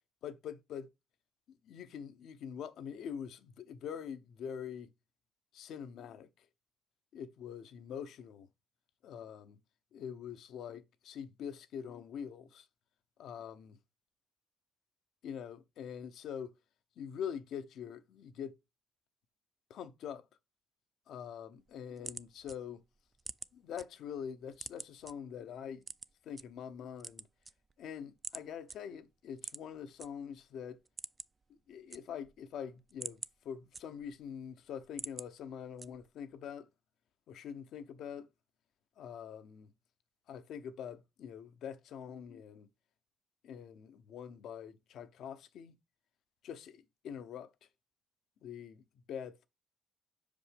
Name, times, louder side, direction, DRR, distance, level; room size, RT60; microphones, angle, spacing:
voice 1, 0.2-0.9 1.5-4.9 5.5-6.5 7.1-8.5 9.0-9.6 9.9-12.7 13.2-13.7 15.2-16.5 17.0-18.5 19.7-20.3 21.1-22.8 23.5-25.8 26.2-27.3 27.8-30.8 31.7-36.7 37.3-38.3 39.0-39.7 40.3-42.7 43.4-45.7 46.4-47.5 48.4-49.5, left 8 dB, 75° left, 0.7 m, -44 dB
sound 1, 21.6-23.8 24.2-25.1 25.8-26.4 26.9-27.9 28.2-28.4 28.7-28.8 29.3-30.1 30.4-30.5 30.8-31.4 31.7-32.4 32.8-34.2 34.6-35.3 35.8-36.2, right 3 dB, 30° right, 0.3 m, -45 dB
5.6 x 5.1 x 3.4 m
cardioid pair, 90°, 0 cm